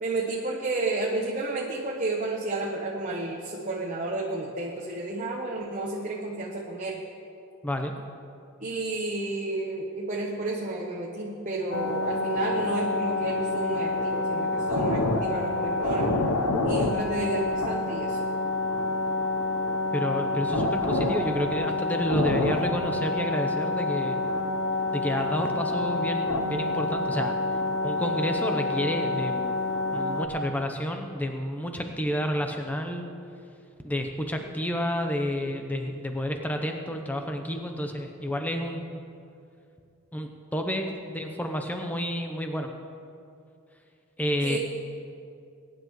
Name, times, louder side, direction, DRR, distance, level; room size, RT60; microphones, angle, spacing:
voice 1, 0.0-7.0 8.6-16.1 16.6-18.2 44.4-44.6, right 2 dB, 35° right, -2 dB, 0.9 m, -31 dB
voice 2, 7.6-7.9 19.9-24.2 24.9-27.4 27.8-29.6 29.9-33.1 33.8-39.0 40.1-42.7 44.2-44.6, equal, 5° left, 4 dB, 0.8 m, -30 dB
sound 1, 11.7-30.3, left 2 dB, 85° left, 0.9 m, -27 dB
21.0 x 10.0 x 3.1 m, 2.5 s
head